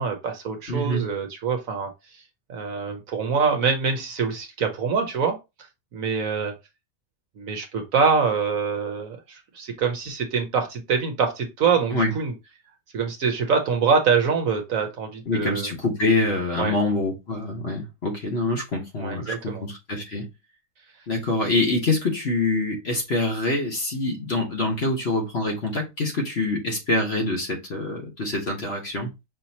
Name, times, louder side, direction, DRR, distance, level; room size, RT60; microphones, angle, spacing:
voice 1, 0.0-1.9 2.5-5.4 5.9-6.5 7.4-12.3 12.9-15.7 16.6-16.7 19.0-19.6, right 5 dB, 60° right, 1.1 m, -24 dB
voice 2, 0.7-1.1 11.9-12.1 15.3-20.3 21.1-29.1, left 2 dB, 45° left, 1.2 m, -25 dB
5.6 x 2.9 x 2.8 m
omnidirectional pair, 1.8 m